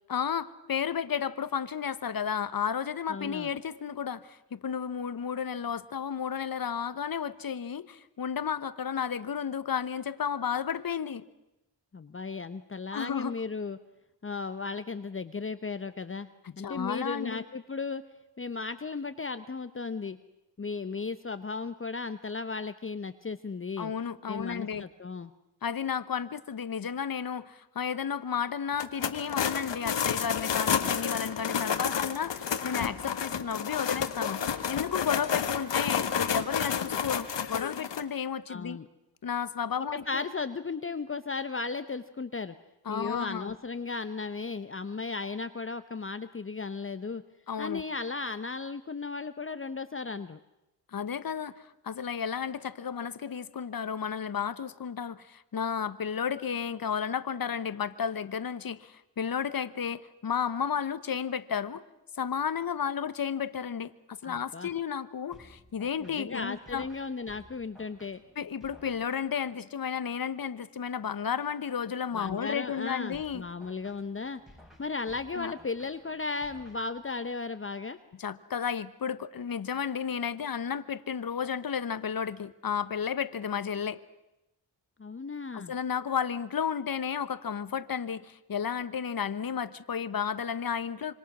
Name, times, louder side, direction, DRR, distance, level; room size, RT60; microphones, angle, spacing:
voice 1, 0.1-11.2 12.9-13.3 16.4-17.4 23.8-24.9 25.6-38.8 39.2-40.2 42.8-43.5 47.5-47.8 50.9-51.5 51.8-61.8 62.1-66.9 68.4-73.4 75.3-75.5 78.2-84.0 85.5-91.1, left 7 dB, 55° left, 15 dB, 1.1 m, -32 dB
voice 2, 3.1-3.5 11.9-13.8 14.2-16.3 16.6-18.0 18.4-20.2 20.6-23.9 24.3-25.3 38.5-38.8 39.8-42.5 42.9-47.2 47.6-50.4 64.2-64.7 66.0-68.2 72.1-74.4 74.8-78.0 85.0-85.7, left 4 dB, 30° left, 11 dB, 0.9 m, -35 dB
sound 1, 28.7-38.0, left 7 dB, 80° left, 1.5 m, -30 dB
sound 2, 65.3-69.5 73.1-77.3, left 1 dB, ahead, 4.9 m, -56 dB
26.0 x 25.5 x 6.2 m, 0.92 s
wide cardioid pair, 85°, 43 cm